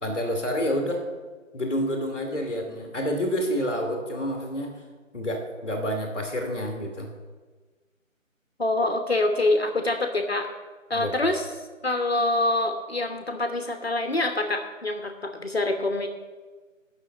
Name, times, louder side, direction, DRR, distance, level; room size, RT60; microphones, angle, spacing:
voice 1, 0.0-1.1 1.5-4.8 5.1-7.1 10.9-11.1, equal, 10° left, -13 dB, 1.2 m, -28 dB
voice 2, 8.6-10.5 10.9-11.5 11.8-16.1, left 2 dB, 50° left, 6 dB, 1.0 m, -25 dB
9.7 x 6.1 x 7.3 m, 1.3 s
figure-of-eight pair, 165°, 40 cm